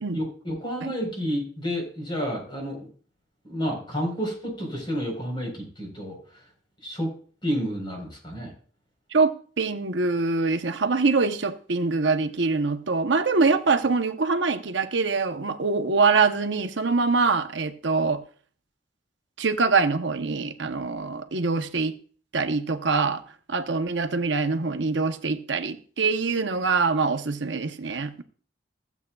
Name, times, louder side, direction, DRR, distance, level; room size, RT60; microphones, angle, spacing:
voice 1, 0.1-2.9 3.4-6.2 6.8-7.1 7.4-8.5, equal, 25° left, 4.1 m, -30 dB
voice 2, 9.1-18.2 19.4-21.9 22.3-23.2 23.5-28.2, right 4 dB, 75° right, 0.9 m, -24 dB
15.5 x 8.1 x 2.3 m
head